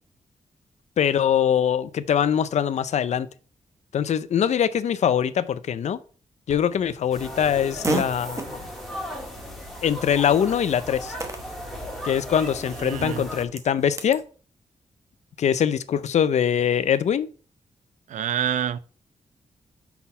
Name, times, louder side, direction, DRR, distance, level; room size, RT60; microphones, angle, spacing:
voice 1, 1.0-3.3 3.9-6.0 6.5-8.6 9.8-11.1 12.0-14.2 15.4-17.3, left 8 dB, 65° left, 0.5 m, -23 dB
Fart, 6.5-14.2, right 3 dB, 25° right, 0.9 m, -36 dB
sound 1, 7.1-13.4, equal, ahead, 1.6 m, -36 dB
voice 2, 12.8-13.2 18.1-18.8, right 9 dB, 75° right, 0.4 m, -27 dB
5.8 x 4.1 x 5.2 m
wide cardioid pair, 150°, 13 cm